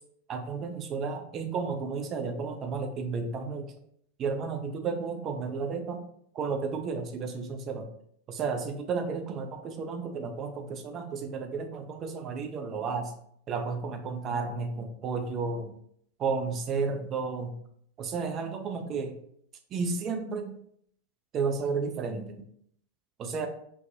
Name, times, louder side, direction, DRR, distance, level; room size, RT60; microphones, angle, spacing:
voice 1, 0.3-3.7 4.2-6.0 6.3-7.9 8.3-13.1 13.5-15.7 16.2-17.5 18.0-19.1 19.7-20.6 21.3-22.4 23.2-23.5, right 5 dB, 30° right, 6 dB, 0.4 m, -32 dB
3.3 x 2.1 x 2.6 m, 0.68 s
figure-of-eight pair, 90°, 0 cm